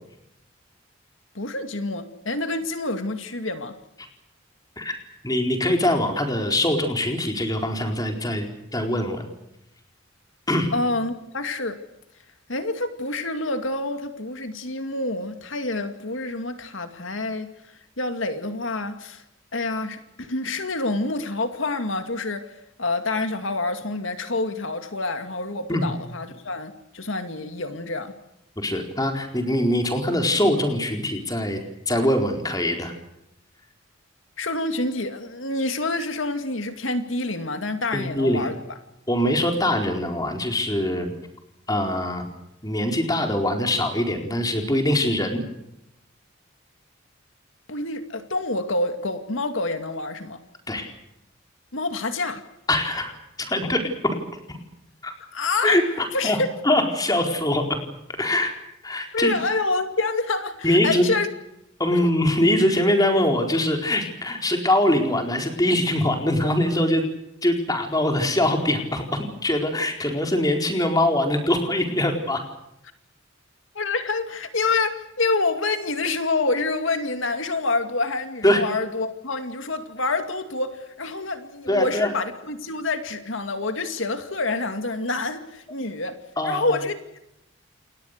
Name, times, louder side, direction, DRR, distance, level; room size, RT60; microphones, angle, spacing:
voice 1, 1.3-3.7 10.7-11.8 12.5-17.5 18.0-19.2 19.5-22.5 22.8-28.1 34.4-38.8 47.7-50.4 51.7-52.4 55.3-55.8 56.1-56.5 59.1-61.3 61.9-62.0 73.7-86.2 86.4-87.2, left 3 dB, 75° left, 8 dB, 2.3 m, -27 dB
voice 2, 5.2-8.5 8.7-9.3 10.5-10.7 25.7-25.9 28.6-31.6 31.9-32.9 37.9-38.4 39.1-41.1 41.7-42.3 42.6-45.4 50.7-50.9 52.7-53.1 53.4-54.2 54.5-54.6 55.0-55.1 55.6-56.4 56.6-57.7 58.2-58.5 58.8-59.3 60.6-61.1 61.8-67.1 67.4-72.4 78.4-78.6 81.7-82.1 86.4-86.8, left 1 dB, 20° left, 4 dB, 4.3 m, -23 dB
29.0 x 22.0 x 6.7 m, 0.85 s
head